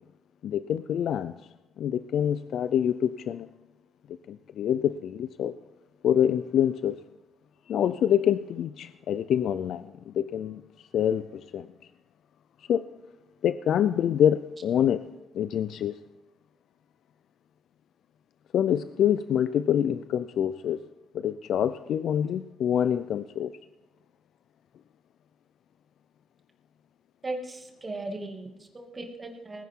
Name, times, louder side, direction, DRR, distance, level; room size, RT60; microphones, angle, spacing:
voice 1, 0.4-1.3 1.8-3.5 4.3-5.6 6.0-7.0 7.7-10.6 10.9-11.7 12.7-12.8 13.4-16.0 18.5-20.8 21.1-23.5, left 9 dB, 70° left, 13 dB, 0.4 m, -26 dB
voice 2, 27.2-29.6, right 2 dB, 30° right, 3 dB, 2.4 m, -37 dB
19.5 x 10.5 x 3.7 m, 1.0 s
cardioid pair, 90°, 0 cm